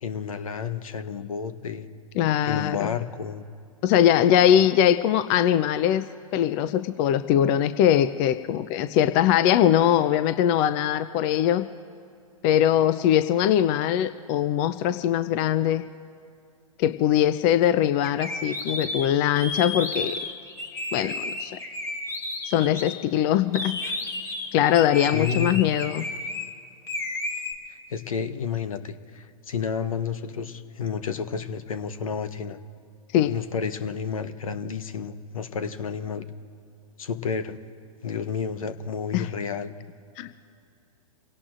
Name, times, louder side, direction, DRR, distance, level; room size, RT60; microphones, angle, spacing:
voice 1, 0.0-1.9 2.4-3.5 25.1-25.6 27.7-32.6 33.3-36.3 37.0-37.6 38.0-39.7, left 6 dB, 70° left, 11 dB, 1.1 m, -31 dB
voice 2, 2.2-2.9 3.8-6.0 6.3-11.7 12.4-15.8 16.8-20.2 20.9-21.6 22.4-23.8 24.5-26.0 33.1-33.3 39.1-39.3 40.2-40.3, left 10 dB, 35° left, 12 dB, 0.5 m, -21 dB
sound 1, 18.0-23.0 23.5-26.5 26.9-27.5, left 2 dB, 15° left, 1.5 m, -32 dB
29.0 x 17.5 x 2.5 m, 2.5 s
figure-of-eight pair, 110°, 18 cm